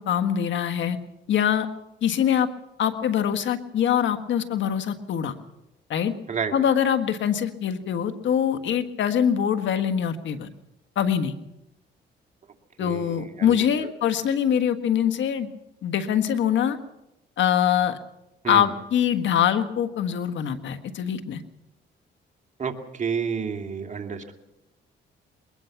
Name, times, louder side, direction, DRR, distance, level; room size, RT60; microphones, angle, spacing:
voice 1, 0.1-1.0 1.3-1.7 2.0-2.5 2.8-5.4 5.9-6.1 6.5-10.5 11.0-11.3 12.8-15.5 15.8-16.8 17.4-18.0 18.5-21.4, left 9 dB, 70° left, 8 dB, 1.7 m, -23 dB
voice 2, 12.8-13.6 18.4-18.7 22.6-24.3, right 6 dB, 35° right, 4 dB, 2.5 m, -30 dB
21.5 x 20.5 x 6.0 m, 0.91 s
cardioid pair, 90°, 20 cm